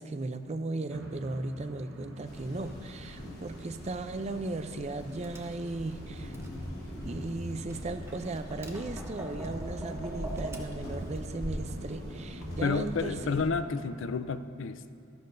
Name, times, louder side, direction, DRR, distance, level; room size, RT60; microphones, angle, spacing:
voice 1, 0.0-6.4 7.0-13.4, right 2 dB, 35° right, 9 dB, 0.5 m, -36 dB
sound 1, 0.9-14.1, right 1 dB, 90° right, 1.0 m, -47 dB
sound 2, 2.2-13.5, equal, 55° left, 1.4 m, -42 dB
Tap, 5.0-11.2, right 1 dB, 15° right, 0.8 m, -44 dB
voice 2, 12.6-14.9, left 4 dB, 75° left, 12 dB, 0.4 m, -31 dB
13.0 x 12.0 x 2.6 m, 2.6 s
head